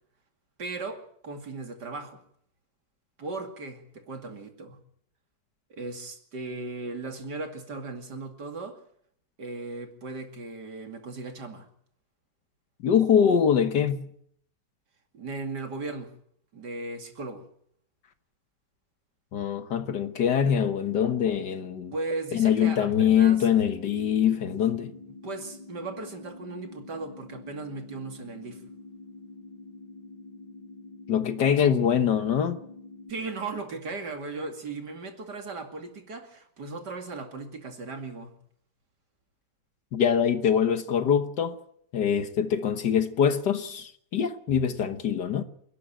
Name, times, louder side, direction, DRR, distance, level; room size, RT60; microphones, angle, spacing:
voice 1, 0.6-2.2 3.2-4.8 5.7-8.8 9.4-11.7 15.1-16.1 16.5-17.4 21.9-23.5 25.2-28.6 33.1-38.3, right 3 dB, 75° right, 3.1 m, -37 dB
voice 2, 12.8-14.1 19.3-21.9 22.3-24.9 31.1-32.6 39.9-41.6 41.9-45.4, left 8 dB, 80° left, 1.8 m, -24 dB
sound 1, 23.1-33.1, left 3 dB, 20° left, 4.8 m, -46 dB
27.5 x 11.5 x 8.9 m
omnidirectional pair, 1.8 m